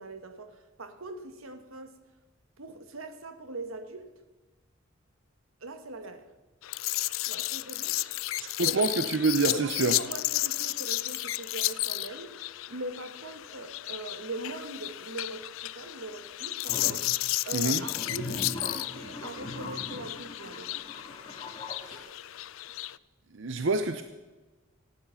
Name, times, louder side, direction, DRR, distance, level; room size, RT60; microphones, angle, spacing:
voice 1, 0.0-2.0 2.6-4.1 5.6-6.3 7.2-8.0 8.6-8.8 9.5-12.4 12.7-17.1 17.4-20.8, right 2 dB, 90° right, 1.3 m, -41 dB
sound 1, 6.6-23.0, left 17 dB, 70° left, 0.4 m, -33 dB
voice 2, 8.6-10.0 17.5-17.8 21.9-22.1 23.3-24.0, right 3 dB, 65° right, 0.6 m, -27 dB
sound 2, 16.7-17.0 17.6-22.0, left 1 dB, 25° left, 1.9 m, -40 dB
16.0 x 9.3 x 5.7 m
head